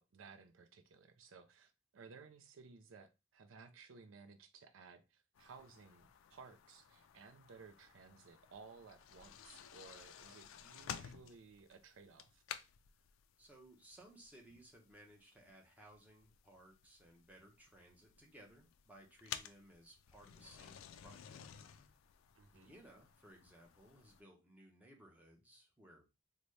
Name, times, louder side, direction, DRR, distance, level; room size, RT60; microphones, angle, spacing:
voice 1, 0.0-12.4 22.4-22.7, right 5 dB, 75° right, 9 dB, 0.5 m, -58 dB
sound 1, 5.4-24.2, left 9 dB, 90° left, 0.3 m, -54 dB
voice 2, 13.4-21.9 22.5-26.2, right 1 dB, 10° right, -1 dB, 0.8 m, -61 dB
3.9 x 2.2 x 3.1 m, 0.26 s
head